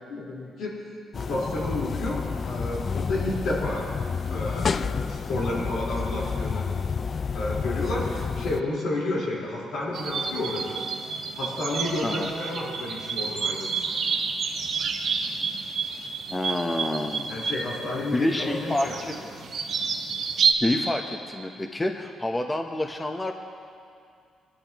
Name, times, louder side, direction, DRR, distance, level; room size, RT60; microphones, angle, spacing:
voice 1, 0.1-0.7 1.1-3.8 4.3-6.6 7.3-10.8 11.3-13.7 17.3-19.0, left 2 dB, 80° left, -5 dB, 4.1 m, -31 dB
sound 1, 1.1-8.6, left 5 dB, 45° left, 0.3 m, -29 dB
sound 2, 9.9-20.5, right 5 dB, 60° right, 1.4 m, -29 dB
voice 2, 16.3-17.3 18.1-19.2 20.6-23.3, left 1 dB, 15° left, 4 dB, 0.9 m, -28 dB
22.0 x 12.0 x 3.0 m, 2.3 s
cardioid pair, 90°, 0 cm